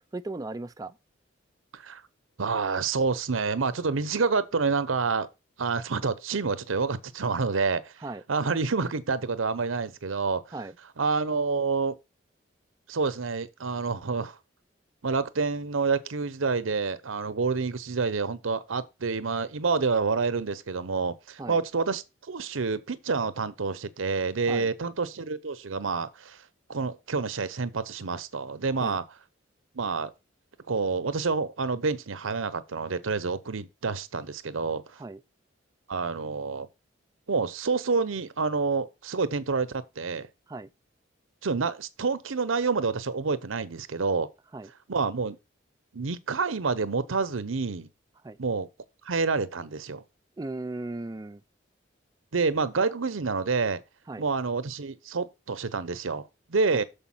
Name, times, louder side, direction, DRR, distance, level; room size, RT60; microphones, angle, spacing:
voice 1, 0.1-0.9 8.0-8.2 10.5-10.7 21.4-21.6 24.5-24.7 28.8-29.0 35.0-35.2 40.5-40.7 44.5-44.7 48.2-48.4 50.4-51.4 54.1-54.2 56.7-56.8, right 2 dB, 20° right, 0.3 m, -36 dB
voice 2, 2.4-5.3 5.6-7.9 8.3-10.4 11.0-12.0 12.9-14.4 15.0-26.4 26.7-29.0 29.7-30.1 30.7-34.8 35.9-36.7 37.3-40.3 41.4-44.3 44.9-45.4 45.9-47.9 48.4-48.7 49.0-50.0 52.3-53.8 54.2-56.8, right 4 dB, 85° right, 0.8 m, -28 dB
6.8 x 5.2 x 5.6 m
head